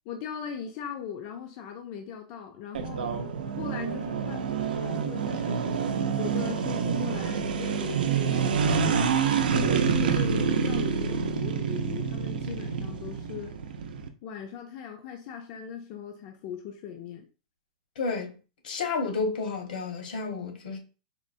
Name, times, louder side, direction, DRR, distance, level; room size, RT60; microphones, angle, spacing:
voice 1, 0.1-3.1 3.6-4.4 4.8-5.8 6.2-9.1 9.5-13.6 14.2-17.3, left 8 dB, 30° left, 0.4 m, -39 dB
sound 1, 2.7-14.1, right 6 dB, 90° right, 0.5 m, -27 dB
voice 2, 18.0-18.3 18.6-20.8, left 4 dB, 80° left, 1.2 m, -31 dB
4.2 x 2.0 x 2.5 m
supercardioid pair, 170°, 5 cm